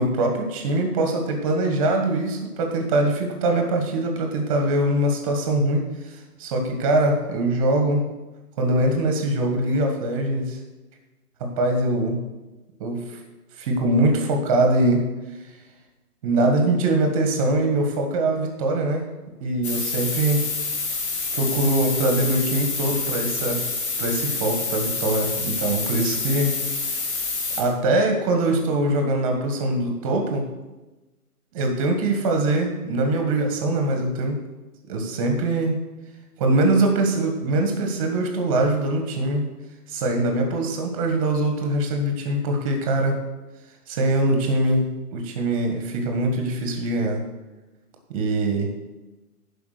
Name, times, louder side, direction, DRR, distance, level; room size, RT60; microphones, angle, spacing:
voice 1, 0.0-8.0 8.6-10.6 11.4-12.2 12.8-13.2 13.6-15.0 16.2-19.0 19.4-20.4 21.3-23.6 24.0-26.5 27.6-30.4 31.5-34.4 34.9-35.8 36.4-39.5 39.9-43.2 43.9-47.2 48.1-48.7, right 2 dB, 20° right, 3 dB, 1.4 m, -22 dB
sound 1, 19.6-27.6, left 4 dB, 45° left, 2.3 m, -27 dB
10.5 x 5.1 x 6.5 m, 1.1 s
hypercardioid pair, 155°, 46 cm